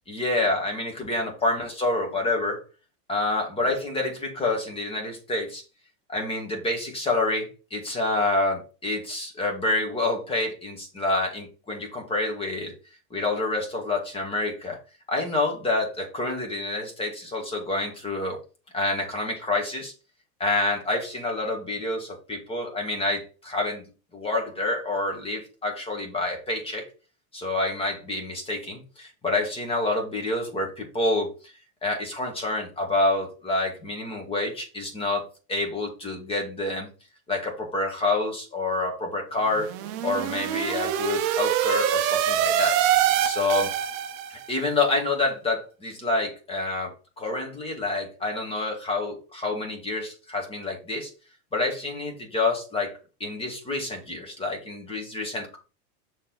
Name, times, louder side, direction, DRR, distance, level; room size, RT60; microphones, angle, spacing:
voice 1, 0.1-2.6 3.1-5.6 6.1-12.7 13.1-14.8 15.1-18.4 18.7-19.9 20.4-23.8 24.1-26.9 27.3-31.5 31.8-36.9 37.3-39.7 40.0-42.8 43.2-43.7 44.3-51.1 51.5-52.9 53.2-55.6, left 2 dB, 10° left, 1 dB, 1.7 m, -28 dB
sound 1, 39.5-44.5, right 10 dB, 30° right, 0.6 m, -25 dB
6.5 x 4.2 x 3.9 m, 0.34 s
supercardioid pair, 155°, 45 cm